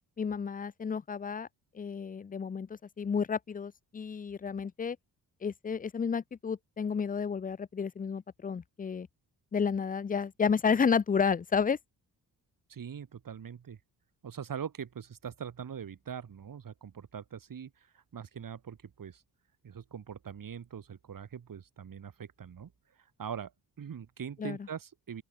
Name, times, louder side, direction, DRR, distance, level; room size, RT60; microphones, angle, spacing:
voice 1, 0.2-1.5 1.7-5.0 5.4-9.1 9.5-11.8 24.4-24.6, left 6 dB, 20° left, 0.5 m, -31 dB
voice 2, 12.7-13.8 14.2-19.2 19.6-22.7 23.0-23.5 23.8-25.2, right 7 dB, 55° right, 4.6 m, -42 dB
open air
cardioid pair, 110°, 39 cm